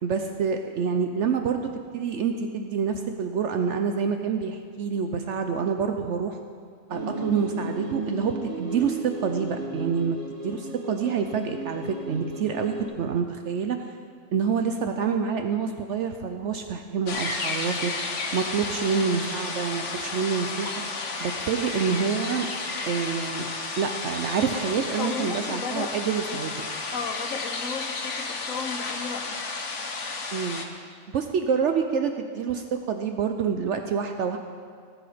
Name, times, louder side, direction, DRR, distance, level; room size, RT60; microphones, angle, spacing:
voice 1, 0.0-6.4 6.9-13.8 14.3-17.9 18.3-20.7 21.2-22.5 22.8-26.7 30.3-30.7 31.1-34.4, right 6 dB, 70° right, 6 dB, 0.9 m, -27 dB
sound 1, 6.9-12.8, right 2 dB, 30° right, 2.2 m, -34 dB
sound 2, 17.1-30.7, left 3 dB, 70° left, 1.4 m, -32 dB
voice 2, 24.8-26.4 26.9-29.4, left 5 dB, 90° left, 4 dB, 1.3 m, -35 dB
17.5 x 7.7 x 5.0 m, 2.1 s
omnidirectional pair, 1.3 m